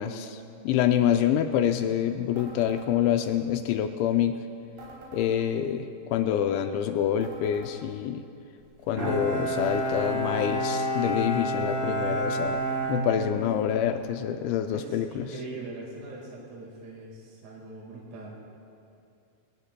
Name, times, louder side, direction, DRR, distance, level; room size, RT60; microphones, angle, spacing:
voice 1, 0.0-4.4 5.1-8.2 8.9-12.6 12.9-15.3, left 10 dB, 85° left, 7 dB, 2.7 m, -26 dB
sound 1, 2.4-2.9 4.8-5.3 7.2-7.8 9.6-10.2, right 2 dB, 85° right, 5.9 m, -46 dB
Bowed string instrument, 9.0-13.8, equal, 20° right, 1.7 m, -29 dB
voice 2, 14.7-18.4, right 2 dB, 55° right, -2 dB, 2.1 m, -41 dB
22.5 x 19.0 x 2.2 m, 2.6 s
omnidirectional pair, 5.7 m